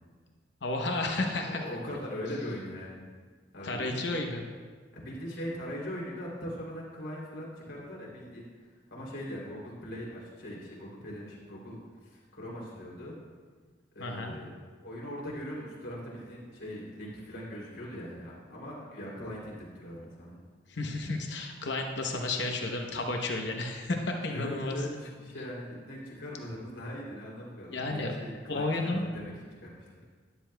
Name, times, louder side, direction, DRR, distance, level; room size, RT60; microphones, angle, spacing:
voice 1, 0.6-1.6 3.6-4.4 14.0-14.3 20.7-24.8 27.7-28.1 28.5-29.0, left 2 dB, 65° left, 2 dB, 0.8 m, -32 dB
voice 2, 1.4-3.0 3.5-3.9 5.0-8.5 8.9-11.8 12.0-13.2 13.9-14.5 14.8-20.4 24.2-29.3 29.6-29.8, equal, 85° left, -4 dB, 3.0 m, -40 dB
12.5 x 11.0 x 2.3 m, 1.5 s
head